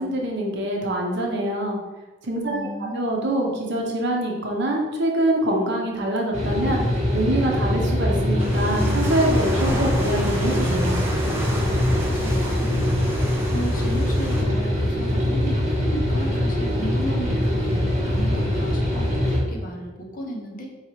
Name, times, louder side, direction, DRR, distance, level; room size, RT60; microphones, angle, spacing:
voice 1, 0.0-1.8 2.2-2.7 2.9-6.8 7.1-11.0, right 1 dB, 65° right, 0 dB, 0.7 m, -24 dB
voice 2, 2.5-2.9 12.1-13.1 13.5-20.7, equal, 45° left, -1 dB, 0.8 m, -34 dB
sound 1, 6.3-19.4, left 1 dB, 40° right, 1.5 m, -23 dB
sound 2, 8.4-14.4, equal, 10° right, 0.6 m, -31 dB
4.7 x 2.9 x 3.0 m, 1.2 s
head